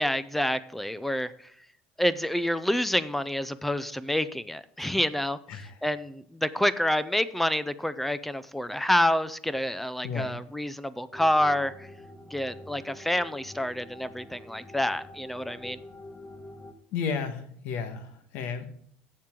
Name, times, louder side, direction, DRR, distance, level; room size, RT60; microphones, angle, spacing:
voice 1, 0.0-1.5 2.0-11.9 12.3-15.8, left 1 dB, 5° left, 15 dB, 0.4 m, -28 dB
voice 2, 10.0-10.4 16.9-18.7, left 6 dB, 60° left, 8 dB, 1.5 m, -33 dB
sound 1, 11.1-16.7, left 1 dB, 25° left, 1.3 m, -46 dB
12.0 x 7.4 x 3.7 m, 0.64 s
cardioid pair, 140°, 4 cm